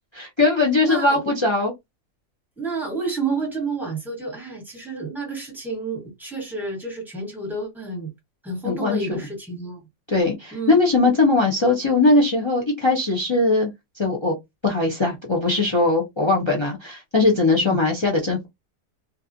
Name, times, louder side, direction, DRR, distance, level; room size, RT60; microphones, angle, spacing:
voice 1, 0.2-1.7 8.6-9.2 10.1-13.7 14.0-14.3 14.6-18.5, left 3 dB, 40° left, 0.4 m, -20 dB
voice 2, 0.8-1.2 2.6-8.1 8.4-9.8 10.5-10.8 17.6-17.8, right 3 dB, ahead, 0.9 m, -30 dB
2.9 x 2.3 x 2.5 m
omnidirectional pair, 1.4 m